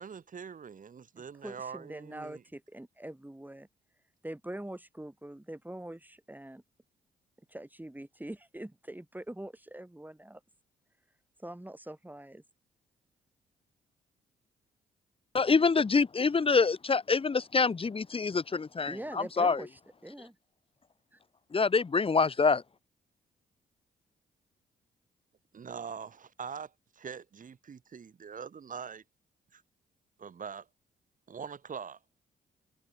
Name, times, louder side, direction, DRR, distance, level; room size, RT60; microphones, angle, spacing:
voice 1, 0.0-2.4 25.5-29.0 29.5-29.6 30.2-30.7 31.3-32.0, right 6 dB, 45° right, 3.9 m, -43 dB
voice 2, 1.2-3.7 4.2-6.6 7.5-10.4 11.4-12.4 18.9-20.4 21.1-21.2, right 1 dB, 10° right, 7.9 m, -43 dB
voice 3, 15.3-19.6 21.5-22.6, left 4 dB, 30° left, 1.3 m, -26 dB
figure-of-eight pair, 40°, 19 cm